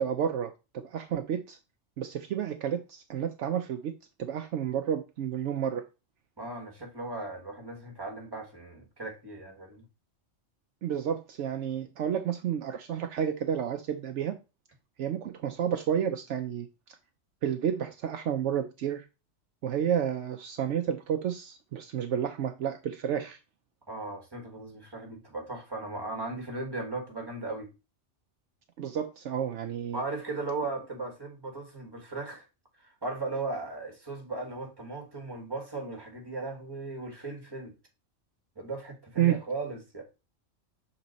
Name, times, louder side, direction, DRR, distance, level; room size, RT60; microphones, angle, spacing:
voice 1, 0.0-1.6 2.0-3.9 4.2-5.8 10.8-14.3 15.0-16.7 17.4-19.0 19.6-23.4 28.8-30.0 39.2-39.4, right 9 dB, 70° right, 0.9 m, -30 dB
voice 2, 6.4-9.8 23.9-27.7 29.9-32.5 32.8-37.7 38.6-40.0, right 3 dB, 20° right, 1.8 m, -37 dB
6.2 x 4.2 x 4.0 m
omnidirectional pair, 1.3 m